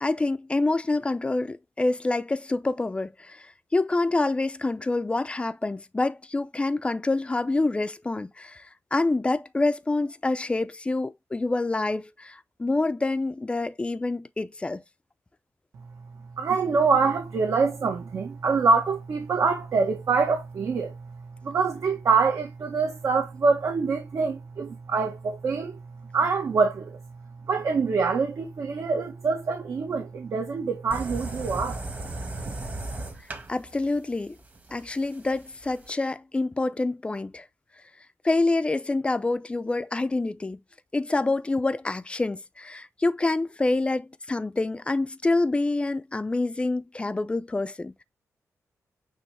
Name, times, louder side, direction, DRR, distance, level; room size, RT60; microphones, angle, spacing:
voice 1, 0.0-14.8 33.5-34.4 34.7-37.4 38.2-40.6 40.9-48.0, left 2 dB, 20° left, 0.6 m, -27 dB
voice 2, 16.4-21.0 21.4-25.8 26.1-27.0 27.5-31.8, right 4 dB, 65° right, 1.5 m, -25 dB
sound 1, 30.9-35.9, right 2 dB, 30° right, 1.5 m, -37 dB
9.1 x 3.1 x 3.3 m
wide cardioid pair, 125°, 6 cm